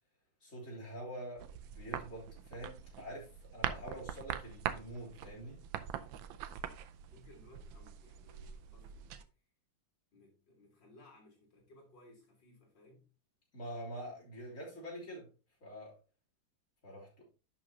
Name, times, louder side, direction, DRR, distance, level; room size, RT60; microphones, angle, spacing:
voice 1, 0.4-5.6 13.5-15.3 15.6-15.9 16.8-17.3, equal, 40° left, 3.4 m, -46 dB
sound 1, 1.4-9.2, right 10 dB, 80° right, 1.5 m, -43 dB
voice 2, 6.6-9.1 10.1-13.0, left 1 dB, 65° left, 4.0 m, -61 dB
11.0 x 5.9 x 2.8 m
omnidirectional pair, 2.1 m